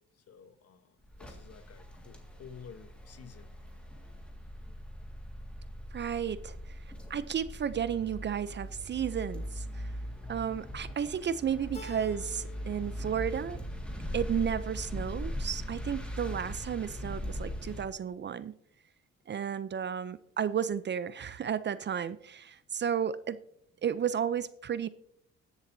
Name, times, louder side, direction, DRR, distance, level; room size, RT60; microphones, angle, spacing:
voice 1, 0.3-3.5, left 7 dB, 55° left, 1.0 m, -52 dB
sound 1, 1.0-17.8, equal, 5° left, 1.8 m, -40 dB
voice 2, 5.9-6.6 7.1-9.9 10.3-13.6 14.1-18.5 19.3-23.4 23.8-24.9, right 8 dB, 40° right, 0.4 m, -33 dB
Keyboard (musical), 11.7-12.9 13.2-13.9, left 4 dB, 20° left, 1.3 m, -48 dB
19.5 x 7.1 x 2.6 m
cardioid pair, 90°, 30 cm